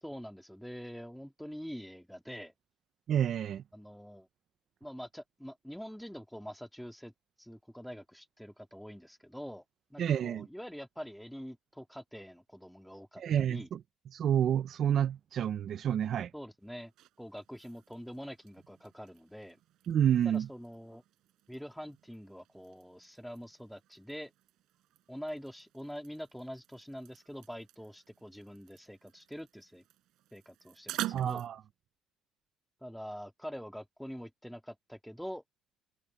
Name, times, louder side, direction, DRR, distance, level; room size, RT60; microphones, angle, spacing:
voice 1, 0.0-2.5 3.7-4.3 4.8-7.1 7.4-9.6 9.9-13.7 16.3-16.9 17.2-19.6 20.2-21.0 21.5-24.3 25.1-29.8 30.3-31.5 32.8-35.4, equal, ahead, 2.2 m, -45 dB
voice 2, 3.1-3.6 10.0-10.5 13.2-13.8 14.1-16.3 19.9-20.5 31.1-31.6, right 9 dB, 55° right, 0.6 m, -29 dB
sound 1, 16.6-31.5, right 14 dB, 75° right, 6.5 m, -48 dB
cardioid pair, 90°, 0 cm